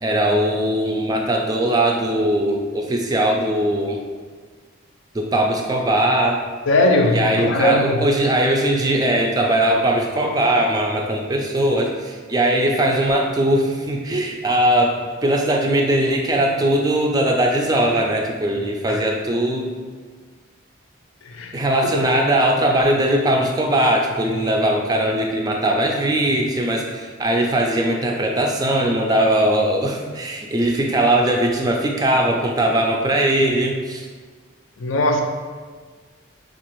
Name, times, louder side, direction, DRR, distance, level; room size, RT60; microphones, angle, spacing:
voice 1, 0.0-4.0 5.1-6.4 7.1-19.8 21.5-34.1, right 1 dB, 20° right, 1 dB, 0.3 m, -20 dB
voice 2, 6.7-8.0 18.9-19.0 21.3-21.6 21.8-22.0 34.8-35.2, left 1 dB, 85° left, 4 dB, 0.5 m, -19 dB
5.2 x 2.4 x 3.0 m, 1.5 s
head